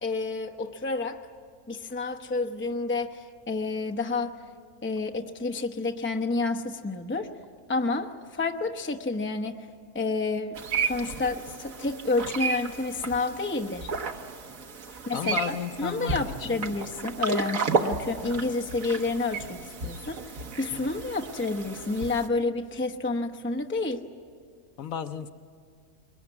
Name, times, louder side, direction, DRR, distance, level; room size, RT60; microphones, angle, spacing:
voice 1, 0.0-1.2 1.7-4.4 4.8-7.3 7.7-9.7 9.9-13.9 14.9-24.0, left 3 dB, 10° left, 5 dB, 0.8 m, -30 dB
sound 1, 10.6-22.3, right 5 dB, 65° right, 1.7 m, -33 dB
voice 2, 15.1-16.6 24.8-25.3, left 7 dB, 70° left, 9 dB, 1.2 m, -33 dB
23.0 x 21.5 x 9.6 m, 2.2 s
omnidirectional pair, 1.6 m